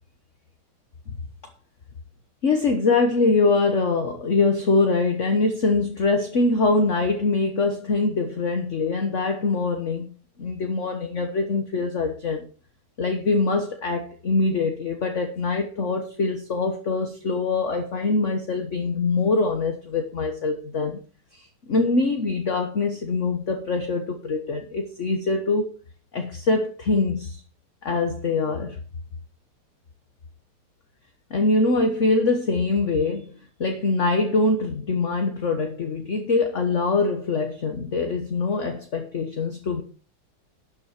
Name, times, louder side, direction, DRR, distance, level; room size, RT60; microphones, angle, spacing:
voice 1, 2.4-10.1 10.4-12.4 13.0-21.0 21.3-25.7 26.1-27.4 27.8-28.8 31.3-33.3 33.6-39.8, left 3 dB, 40° left, 5 dB, 1.3 m, -23 dB
12.0 x 8.4 x 4.4 m, 0.37 s
omnidirectional pair, 2.4 m